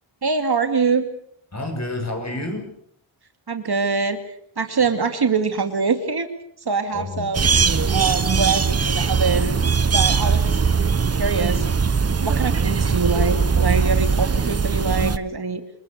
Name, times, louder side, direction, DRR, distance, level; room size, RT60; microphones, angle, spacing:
voice 1, 0.2-1.1 3.5-6.3 6.6-7.5 7.9-9.5 9.9-10.6 11.1-11.7 12.2-15.6, right 4 dB, 55° right, 7 dB, 2.6 m, -24 dB
voice 2, 1.5-2.7 6.9-7.3, left 2 dB, 35° left, 4 dB, 7.7 m, -30 dB
sound 1, 7.3-15.2, right 5 dB, 30° right, 1.0 m, -20 dB
28.0 x 21.0 x 6.8 m, 0.65 s
wide cardioid pair, 80°, 46 cm